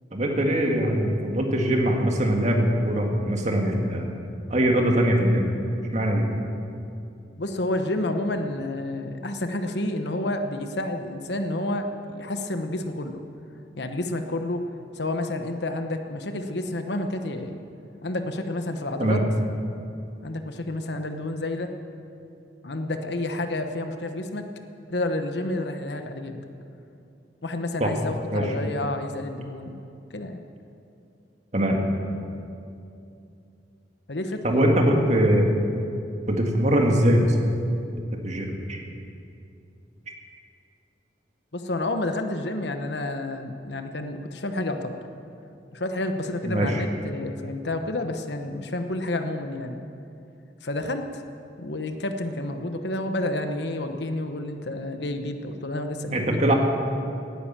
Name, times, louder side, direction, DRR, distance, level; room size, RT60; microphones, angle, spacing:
voice 1, 0.1-4.1 4.5-5.5 5.9-6.3 19.0-19.2 27.8-27.9 28.3-28.6 31.5-31.8 34.4-35.5 36.3-37.4 38.2-38.8 46.4-46.8 56.1-56.5, right 1 dB, 40° right, 2 dB, 1.9 m, -22 dB
voice 2, 7.4-13.2 13.8-14.6 15.0-17.6 18.0-19.2 20.2-21.7 22.6-24.5 24.9-26.4 27.4-29.8 30.1-30.4 34.1-34.6 41.5-45.0 45.7-49.8 50.6-51.2 51.6-56.5, left 1 dB, 70° left, 6 dB, 1.1 m, -30 dB
17.5 x 9.9 x 7.5 m, 2.6 s
head